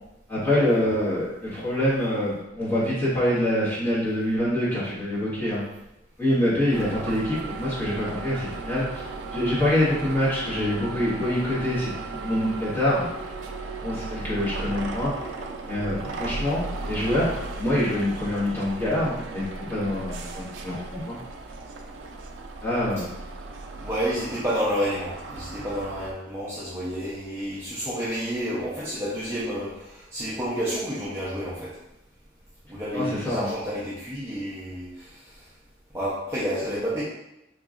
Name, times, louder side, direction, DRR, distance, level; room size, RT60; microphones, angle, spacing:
voice 1, 0.3-5.6 6.2-8.9 9.3-13.1 13.8-15.1 15.7-21.2 22.6-23.1 32.9-33.5, left 1 dB, 10° left, -10 dB, 1.5 m, -25 dB
sound 1, 6.7-26.1, right 3 dB, 85° right, 0.4 m, -36 dB
voice 2, 23.8-31.7 32.7-35.2 35.9-37.0, equal, 15° right, -9 dB, 0.5 m, -30 dB
3.7 x 3.0 x 2.4 m, 0.89 s
head